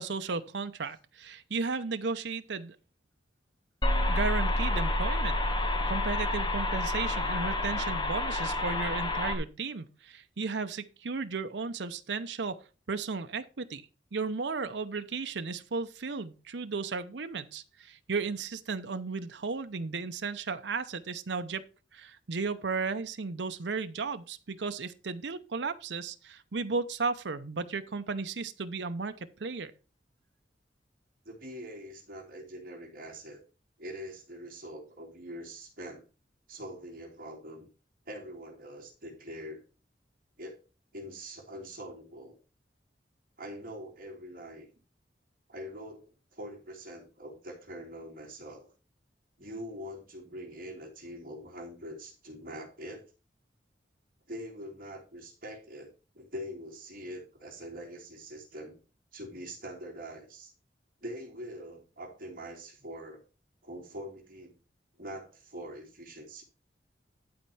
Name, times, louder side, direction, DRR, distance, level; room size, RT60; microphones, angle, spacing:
voice 1, 0.0-2.8 4.1-5.4 5.6-21.6 21.9-29.7, right 4 dB, 80° right, 0.7 m, -34 dB
sound 1, 3.8-9.3, left 1 dB, 25° left, 1.4 m, -29 dB
voice 2, 31.2-33.4 33.8-36.0 36.5-37.7 38.0-39.6 40.4-40.6 40.9-42.4 43.4-44.7 45.5-48.7 49.4-53.1 54.3-58.8 59.1-60.5 61.0-63.2 63.6-64.6 65.0-66.4, equal, 55° right, 3.0 m, -43 dB
11.5 x 4.5 x 5.5 m
head